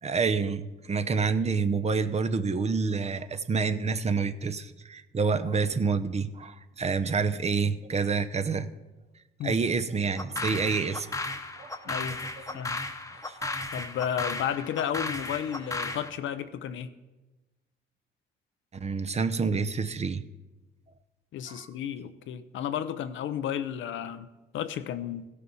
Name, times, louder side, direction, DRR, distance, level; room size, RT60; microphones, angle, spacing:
voice 1, 0.0-8.7 9.4-11.1 11.6-12.6 13.1-13.6 18.8-20.2 21.5-21.7, right 5 dB, 35° right, 10 dB, 0.7 m, -28 dB
sound 1, 10.2-16.1, left 2 dB, 15° left, 1.0 m, -35 dB
voice 2, 11.9-12.2 12.5-12.8 13.7-16.9 21.3-24.3 24.5-25.3, left 9 dB, 75° left, 11 dB, 0.7 m, -32 dB
16.0 x 6.7 x 5.4 m, 1.1 s
cardioid pair, 90°, 20 cm